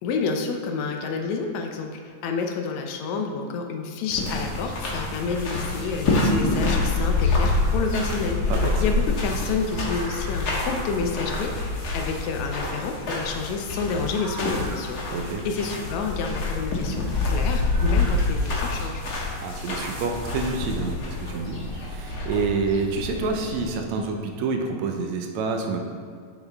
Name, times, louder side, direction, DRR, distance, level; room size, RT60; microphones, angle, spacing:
voice 1, 0.0-8.4 8.8-15.0 15.5-19.0, left 5 dB, 80° left, 4 dB, 2.0 m, -29 dB
sound 1, 4.1-23.7, left 3 dB, 45° left, 1.5 m, -27 dB
sound 2, 6.7-18.1, right 1 dB, 25° right, 2.4 m, -43 dB
voice 2, 8.5-8.8 15.1-15.5 19.4-25.8, right 4 dB, 80° right, 4 dB, 2.0 m, -28 dB
9.6 x 7.2 x 3.5 m, 2.2 s
omnidirectional pair, 3.3 m